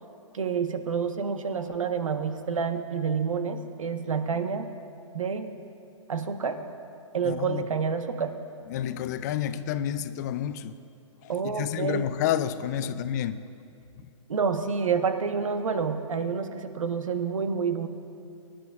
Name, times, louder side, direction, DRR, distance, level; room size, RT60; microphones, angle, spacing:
voice 1, 0.3-4.7 5.1-5.6 6.1-6.6 7.1-8.4 11.3-12.1 12.8-12.9 14.3-17.9, right 6 dB, 80° right, 8 dB, 1.1 m, -28 dB
voice 2, 7.2-7.6 8.7-10.8 11.2-13.4, left 10 dB, 35° left, 13 dB, 0.4 m, -30 dB
25.0 x 10.5 x 2.4 m, 2.5 s
hypercardioid pair, 140°, 17 cm